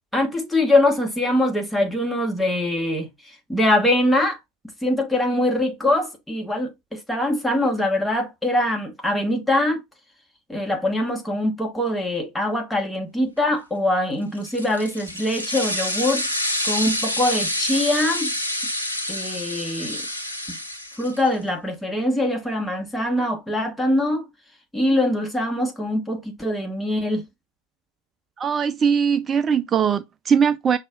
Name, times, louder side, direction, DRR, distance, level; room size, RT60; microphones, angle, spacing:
voice 1, 0.1-3.1 3.5-4.4 4.8-9.8 10.5-16.3 16.6-18.3 19.1-20.0 21.0-24.3 24.7-27.2, left 1 dB, 5° left, 1.2 m, -23 dB
sound 1, 14.4-21.3, left 1 dB, 90° left, 0.7 m, -27 dB
voice 2, 28.4-30.8, right 7 dB, 25° right, 0.3 m, -20 dB
6.0 x 2.4 x 2.3 m
figure-of-eight pair, 80°, 0 cm